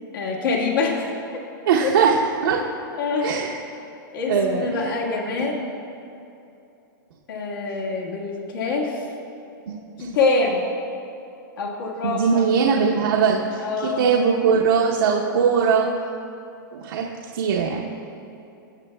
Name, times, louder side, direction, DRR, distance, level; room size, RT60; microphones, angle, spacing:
voice 1, 0.1-1.1 1.8-1.9 2.9-3.3 4.1-5.7 7.3-9.1 10.0-10.6 11.6-12.5 13.6-14.1, left 4 dB, 75° left, -1 dB, 1.7 m, -25 dB
voice 2, 1.7-2.2 2.4-2.6 3.2-3.5 4.3-4.9 5.2-5.4 9.7-9.8 12.0-15.9 16.7-17.1 17.3-17.9, right 6 dB, 75° right, -3 dB, 0.9 m, -20 dB
17.5 x 7.0 x 2.3 m, 2.8 s
hypercardioid pair, 130°, 12 cm